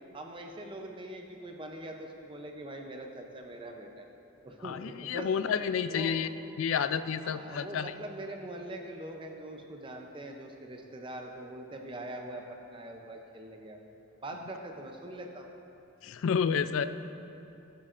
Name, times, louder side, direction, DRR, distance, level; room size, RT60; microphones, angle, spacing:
voice 1, 0.1-4.1 4.4-5.3 5.9-6.2 7.2-12.4 12.7-13.8 14.2-15.5, right 1 dB, 25° right, 3 dB, 0.5 m, -42 dB
voice 2, 4.6-6.3 6.6-7.9 16.0-16.9, left 7 dB, 70° left, 12 dB, 0.3 m, -30 dB
14.0 x 8.5 x 2.5 m, 2.7 s
head